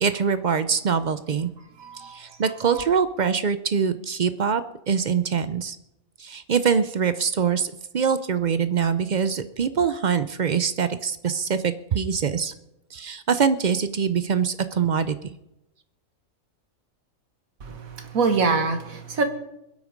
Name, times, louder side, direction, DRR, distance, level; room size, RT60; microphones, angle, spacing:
voice 1, 0.0-1.5 2.1-4.6 4.9-5.8 6.2-12.5 12.9-15.2, right 6 dB, 55° right, 12 dB, 0.5 m, -24 dB
voice 2, 1.8-2.8 17.6-19.2, right 4 dB, 80° right, 7 dB, 1.9 m, -26 dB
22.0 x 8.4 x 5.1 m, 0.88 s
omnidirectional pair, 1.5 m